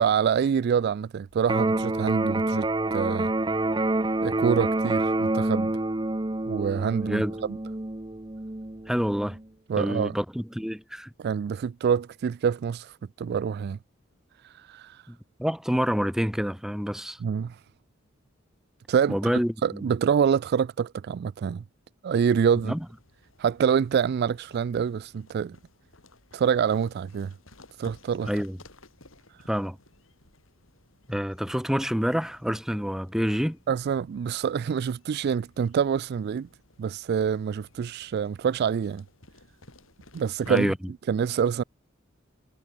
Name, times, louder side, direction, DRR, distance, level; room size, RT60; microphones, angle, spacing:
voice 1, 0.0-3.3 4.2-5.7 6.5-7.2 7.5-7.6 9.7-10.2 11.2-13.8 14.4-15.0 17.2-17.6 18.9-19.2 19.6-21.6 22.0-22.7 23.4-25.6 26.3-27.3 27.8-28.3 33.7-36.5 36.8-39.0 40.1-40.7 41.1-41.6, right 7 dB, 50° right, 0.3 m, -26 dB
Electric guitar, 1.4-9.4, right 2 dB, 20° right, 1.0 m, -27 dB
voice 2, 8.9-9.4 9.8-11.1 15.1-17.2 19.1-19.9 22.6-22.8 28.3-28.6 29.5-29.8 31.1-33.6 40.5-40.8, equal, ahead, 1.6 m, -27 dB
sound 1, 22.2-40.7, left 2 dB, 80° left, 7.0 m, -56 dB
head